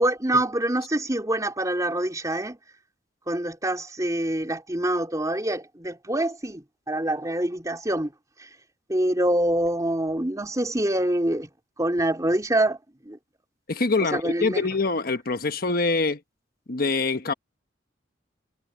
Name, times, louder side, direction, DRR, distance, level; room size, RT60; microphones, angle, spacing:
voice 1, 0.0-2.6 3.3-8.1 8.9-11.5 11.8-12.8 13.0-13.2 14.0-14.6, right 1 dB, 20° right, 3.6 m, -25 dB
voice 2, 13.7-16.2 16.7-17.3, left 3 dB, 50° left, 1.2 m, -24 dB
head